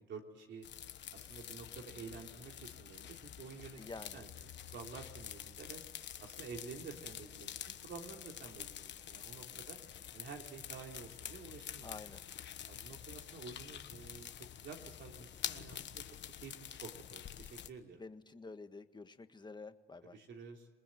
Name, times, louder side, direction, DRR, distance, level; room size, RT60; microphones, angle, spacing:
voice 1, 0.1-0.7 1.1-3.8 4.1-5.8 6.2-9.8 10.1-12.0 12.7-14.3 14.6-16.1 16.4-18.0 20.1-20.7, right 5 dB, 65° right, 2 dB, 3.1 m, -50 dB
sound 1, 0.6-17.7, left 10 dB, 65° left, 1.3 m, -48 dB
voice 2, 3.8-4.2 11.8-12.2 18.0-20.2, left 3 dB, 20° left, 8 dB, 1.6 m, -49 dB
27.5 x 20.0 x 9.3 m, 1.3 s
cardioid pair, 90°, 20 cm